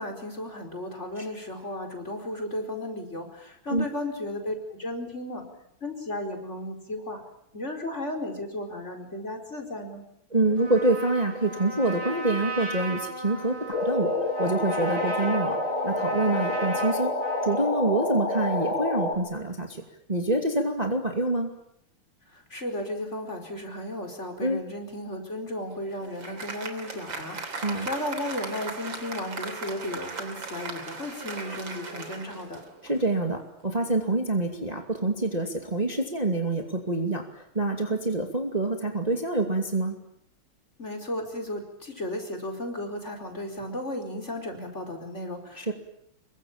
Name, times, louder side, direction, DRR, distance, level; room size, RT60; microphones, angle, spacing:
voice 1, 0.0-5.5 5.8-7.2 7.5-10.0 22.3-32.6 40.8-45.7, left 1 dB, 30° left, 4 dB, 5.0 m, -34 dB
voice 2, 10.3-15.6 15.8-17.1 17.4-19.8 20.1-21.5 24.4-24.6 27.6-27.9 32.8-40.0 45.6-45.7, right 2 dB, 20° right, 3 dB, 2.5 m, -26 dB
Trumpet, 10.6-17.7, right 2 dB, 80° right, 7.8 m, -36 dB
sound 1, 13.7-19.1, left 2 dB, 65° left, 6.6 m, -28 dB
Applause, 25.6-33.1, right 3 dB, 60° right, 4.1 m, -38 dB
27.0 x 23.5 x 8.9 m, 0.76 s
omnidirectional pair, 2.4 m